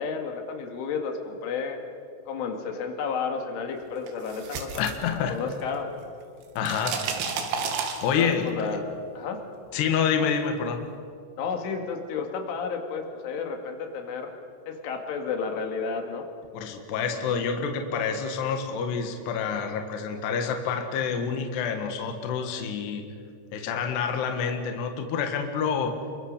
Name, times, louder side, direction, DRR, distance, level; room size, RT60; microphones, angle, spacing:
voice 1, 0.0-1.8 2.3-4.9 5.3-5.9 8.2-8.8 9.1-9.4 11.4-14.3 14.7-16.3, left 5 dB, 80° left, 4 dB, 4.6 m, -31 dB
sound 1, 4.1-5.8 6.0-8.5, right 6 dB, 70° right, 4.3 m, -32 dB
voice 2, 4.8-5.4 6.6-7.1 8.0-8.7 9.7-10.8 16.5-23.0 23.5-26.0, left 6 dB, 65° left, 5 dB, 3.6 m, -28 dB
28.5 x 24.0 x 6.7 m, 2.3 s
omnidirectional pair, 5.6 m